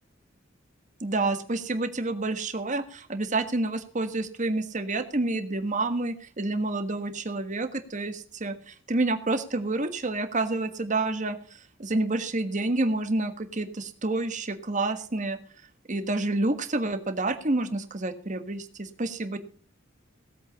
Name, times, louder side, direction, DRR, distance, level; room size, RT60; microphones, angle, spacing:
voice 1, 1.0-15.4 15.9-19.4, right 2 dB, 40° right, 8 dB, 1.5 m, -29 dB
17.5 x 8.2 x 5.5 m, 0.43 s
head